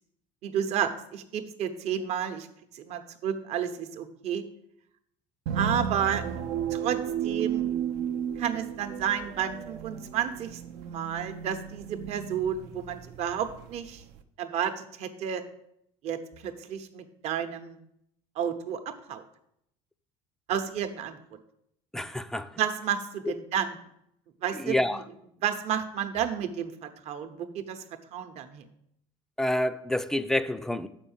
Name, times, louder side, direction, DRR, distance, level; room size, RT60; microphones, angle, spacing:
voice 1, 0.4-2.5 2.7-4.4 5.5-6.2 6.7-7.7 8.4-14.0 14.4-15.4 16.0-17.8 18.4-19.2 20.5-21.2 22.6-23.7 24.4-24.8 25.4-27.8 28.1-28.7, right 8 dB, 55° right, 0.9 m, -31 dB
sound 1, 5.5-14.2, right 8 dB, 80° right, 0.7 m, -34 dB
voice 2, 21.9-22.6 24.5-25.0 29.4-30.9, left 1 dB, 5° left, 0.4 m, -28 dB
7.2 x 5.4 x 7.1 m
cardioid pair, 130°, 13 cm